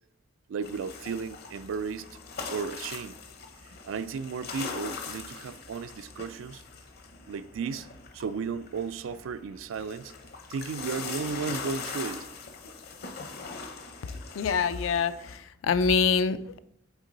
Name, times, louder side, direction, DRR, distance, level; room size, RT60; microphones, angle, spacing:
voice 1, 0.5-2.1 2.5-3.2 3.6-6.6 7.3-7.9 8.1-10.1 10.5-12.3, right 5 dB, 75° right, 0.3 m, -34 dB
sound 1, 0.6-15.4, left 5 dB, 55° left, 0.7 m, -41 dB
voice 2, 14.4-16.6, left 5 dB, 75° left, 0.4 m, -25 dB
8.0 x 3.7 x 3.9 m
head